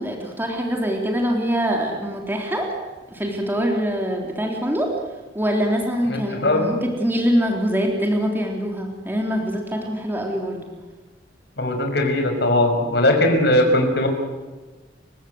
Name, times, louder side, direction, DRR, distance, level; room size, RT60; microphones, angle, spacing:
voice 1, 0.0-2.7 3.1-4.9 5.4-10.7, equal, 10° right, 1 dB, 3.6 m, -24 dB
voice 2, 6.1-6.7 11.6-14.1, left 1 dB, 65° left, 4 dB, 5.8 m, -19 dB
29.5 x 17.0 x 8.0 m, 1.2 s
head